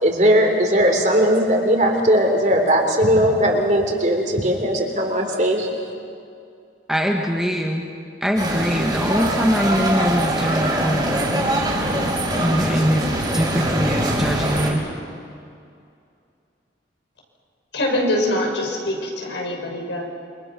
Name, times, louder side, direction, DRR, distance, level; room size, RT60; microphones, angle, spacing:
voice 1, 0.0-5.7, equal, 40° right, 2 dB, 3.4 m, -18 dB
voice 2, 6.9-7.8 8.2-11.4 12.4-14.8, equal, ahead, 0 dB, 1.6 m, -22 dB
sound 1, 8.4-14.7, right 1 dB, 25° right, 4.1 m, -23 dB
voice 3, 17.7-20.0, left 1 dB, 75° left, -1 dB, 6.2 m, -23 dB
28.0 x 26.0 x 6.2 m, 2.4 s
head